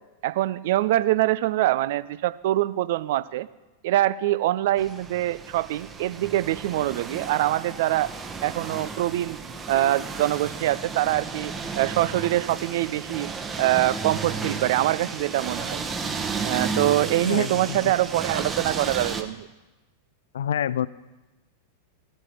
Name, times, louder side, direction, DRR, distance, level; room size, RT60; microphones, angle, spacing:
voice 1, 0.2-3.5 3.8-8.1 8.4-9.4 9.7-13.3 13.6-15.8 16.4-19.5, right 15 dB, 55° right, 17 dB, 0.4 m, -24 dB
sound 1, 4.8-19.2, right 4 dB, 20° right, 1.1 m, -33 dB
voice 2, 17.2-17.8 20.3-20.9, left 9 dB, 65° left, 20 dB, 0.4 m, -27 dB
15.5 x 8.8 x 4.5 m, 1.1 s
figure-of-eight pair, 90°, 0 cm